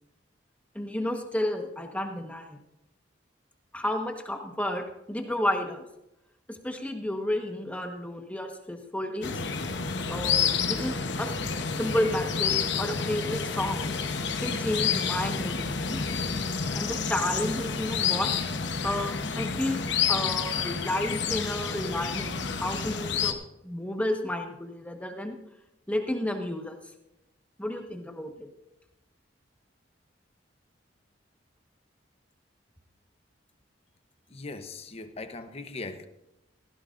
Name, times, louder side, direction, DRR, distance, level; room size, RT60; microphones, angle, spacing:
voice 1, 0.7-2.6 3.7-5.8 6.5-9.3 10.1-11.3 11.8-13.9 14.4-16.2 16.7-18.3 18.8-19.8 20.1-23.4 23.6-25.4 25.9-26.8 27.6-28.5, left 1 dB, 5° left, 1.3 m, -31 dB
sound 1, 9.2-23.3, left 6 dB, 65° left, 1.0 m, -29 dB
voice 2, 34.3-36.1, left 3 dB, 30° left, 0.9 m, -39 dB
17.5 x 15.5 x 2.6 m
head